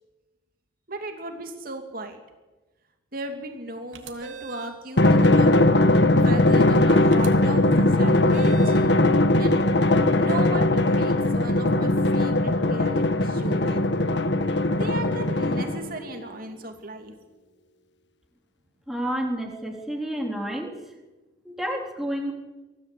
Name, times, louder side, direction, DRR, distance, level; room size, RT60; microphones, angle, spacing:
voice 1, 0.9-2.2 3.1-5.5 6.1-8.7 9.4-9.6 10.2-13.8 14.7-17.1, right 1 dB, 50° right, 4 dB, 2.7 m, -36 dB
sound 1, 3.9-4.8 7.1-7.3 8.3-8.9, right 5 dB, 85° right, 2.7 m, -40 dB
Drum, 5.0-16.0, left 2 dB, 65° left, 1.5 m, -20 dB
voice 2, 18.9-20.7 21.4-22.3, equal, ahead, 0 dB, 3.7 m, -29 dB
25.0 x 17.5 x 8.6 m, 1.2 s
head